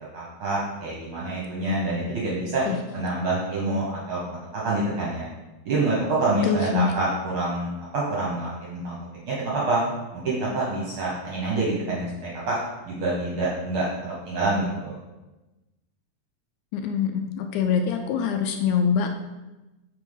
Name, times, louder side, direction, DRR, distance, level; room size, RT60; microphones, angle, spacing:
voice 1, 0.0-2.6 2.9-5.3 5.6-9.0 9.2-9.8 10.1-12.6 12.8-15.0, right 2 dB, 65° right, -5 dB, 1.4 m, -27 dB
voice 2, 6.4-6.9 16.7-19.2, left 6 dB, 80° left, 5 dB, 1.8 m, -24 dB
5.7 x 3.5 x 5.5 m, 1.1 s
omnidirectional pair, 3.6 m